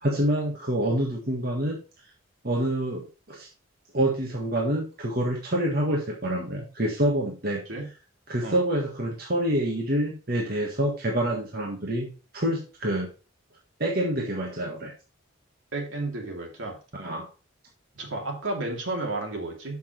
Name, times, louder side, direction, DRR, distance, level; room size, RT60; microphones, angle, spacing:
voice 1, 0.0-1.8 2.4-3.5 3.9-7.6 8.3-13.1 13.8-14.9 16.9-17.3, right 1 dB, 50° right, -1 dB, 1.6 m, -27 dB
voice 2, 15.7-16.8 17.9-19.8, right 2 dB, 75° right, 1 dB, 2.7 m, -32 dB
7.2 x 6.1 x 4.4 m, 0.34 s
head